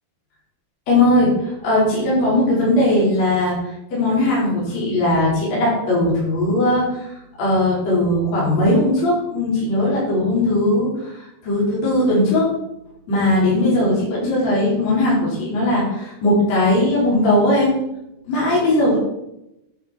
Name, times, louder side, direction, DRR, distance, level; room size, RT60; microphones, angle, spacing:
voice 1, 0.9-12.5 13.1-17.8 18.2-19.0, left 1 dB, 40° left, -7 dB, 5.2 m, -19 dB
11.0 x 6.8 x 5.5 m, 0.88 s
omnidirectional pair, 4.8 m